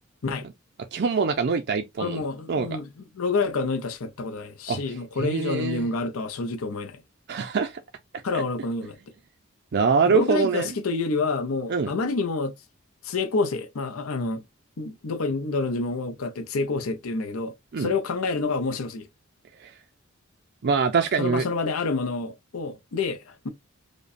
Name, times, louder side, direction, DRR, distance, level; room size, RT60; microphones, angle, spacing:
voice 1, 0.9-2.2 2.5-2.7 4.7-5.9 7.3-7.8 8.3-8.4 9.7-10.7 11.7-11.9 17.7-17.9 19.6-19.7 20.6-21.4, right 5 dB, 55° right, 0.5 m, -24 dB
voice 2, 2.0-7.0 8.2-9.0 10.1-12.5 13.0-14.4 14.8-19.1 21.2-23.5, left 3 dB, 80° left, 0.6 m, -28 dB
5.1 x 2.2 x 2.5 m
head